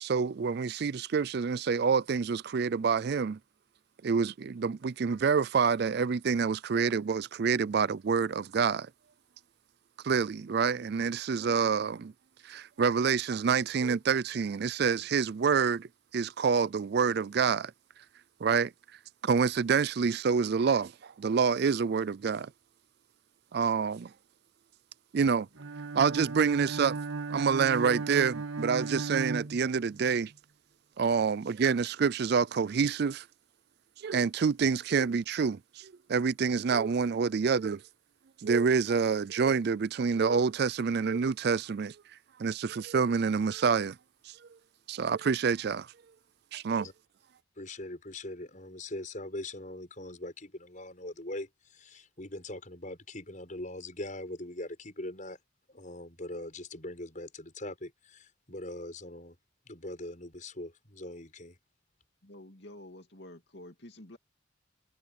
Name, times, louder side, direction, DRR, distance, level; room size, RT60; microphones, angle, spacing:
voice 1, 0.0-3.4 4.0-8.9 10.0-12.1 12.4-15.9 16.1-17.7 18.4-18.7 19.2-22.5 23.5-24.1 25.1-25.5 25.9-27.0 27.3-30.3 31.0-33.2 34.0-37.8 38.4-42.0 42.4-44.0 44.3-44.4 44.9-45.9 46.5-46.9, right 5 dB, 55° right, 0.4 m, -27 dB
Bowed string instrument, 25.6-30.1, right 4 dB, 85° right, 1.6 m, -36 dB
voice 2, 47.6-55.4 55.7-59.4 59.7-61.6, left 1 dB, 40° left, 6.1 m, -41 dB
voice 3, 62.2-64.2, left 1 dB, 60° left, 2.8 m, -49 dB
head